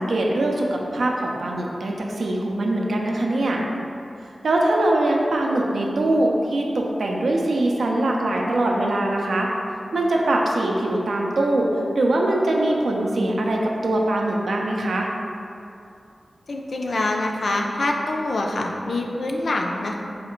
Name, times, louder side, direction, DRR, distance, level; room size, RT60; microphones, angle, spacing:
voice 1, 0.0-3.6 4.4-9.5 9.9-11.7 12.0-15.1, right 1 dB, 85° right, -1 dB, 0.4 m, -22 dB
voice 2, 16.5-19.9, left 2 dB, 70° left, 1 dB, 0.3 m, -25 dB
4.1 x 2.4 x 3.0 m, 2.6 s
wide cardioid pair, 95°, 0 cm